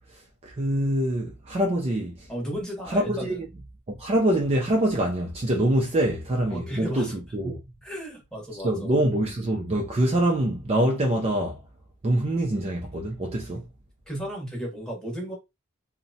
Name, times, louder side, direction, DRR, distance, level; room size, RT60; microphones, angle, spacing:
voice 1, 0.4-2.3 2.9-3.5 3.9-7.6 8.6-11.6 12.0-13.6, right 1 dB, 25° right, 0.4 m, -25 dB
voice 2, 2.3-3.4 6.5-7.1 7.8-8.9 14.1-15.3, equal, 5° left, 0.9 m, -34 dB
2.8 x 2.1 x 2.6 m
head